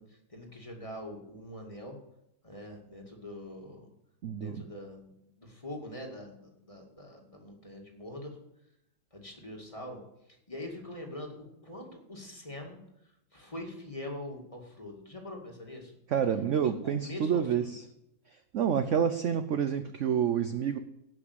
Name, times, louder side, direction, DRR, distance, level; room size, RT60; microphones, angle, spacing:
voice 1, 0.0-2.0 2.4-3.9 4.4-8.4 9.1-10.0 10.3-12.8 13.3-15.9 16.6-17.7, left 1 dB, 20° left, 1 dB, 2.2 m, -43 dB
voice 2, 4.2-4.6 16.1-17.8 18.5-20.8, right 8 dB, 60° right, 10 dB, 0.8 m, -28 dB
17.0 x 6.0 x 8.0 m, 0.83 s
omnidirectional pair, 2.0 m